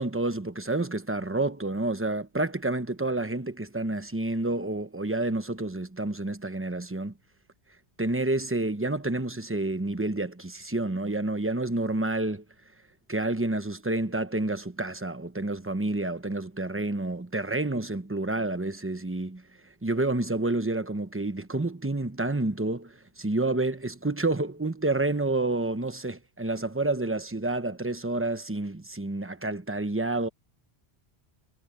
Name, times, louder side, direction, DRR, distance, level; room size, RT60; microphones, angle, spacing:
voice 1, 0.0-7.1 8.0-12.4 13.1-19.4 19.8-30.3, right 2 dB, 15° right, 0.9 m, -29 dB
omnidirectional pair, 1.1 m